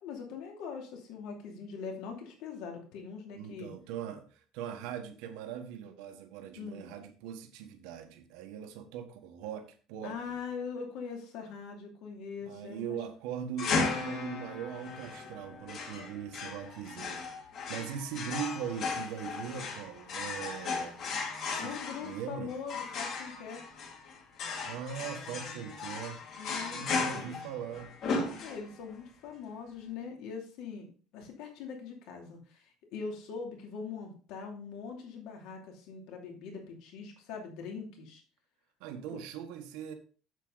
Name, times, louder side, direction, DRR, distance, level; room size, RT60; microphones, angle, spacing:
voice 1, 0.0-3.7 6.5-6.9 10.0-13.0 21.6-23.6 26.4-27.4 28.4-38.2 39.1-39.2, left 5 dB, 70° left, 2 dB, 2.6 m, -42 dB
voice 2, 3.3-10.3 12.4-17.2 17.7-21.1 21.5-22.5 24.6-26.2 26.7-27.9 38.8-39.9, right 8 dB, 80° right, 5 dB, 1.4 m, -40 dB
sound 1, 13.6-28.9, left 4 dB, 45° left, 2.1 m, -36 dB
8.1 x 7.6 x 4.0 m, 0.40 s
cardioid pair, 170°, 0 cm